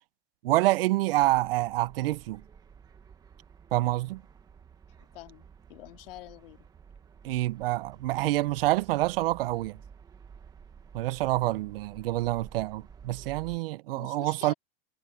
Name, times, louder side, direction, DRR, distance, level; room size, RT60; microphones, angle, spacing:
voice 1, 0.4-2.4 3.7-4.2 7.2-9.8 10.9-14.5, right 17 dB, 75° right, 0.7 m, -27 dB
sound 1, 1.2-13.6, right 6 dB, 15° right, 1.1 m, -52 dB
voice 2, 5.0-6.7 13.9-14.5, left 16 dB, 70° left, 2.4 m, -47 dB
supercardioid pair, 170°, 29 cm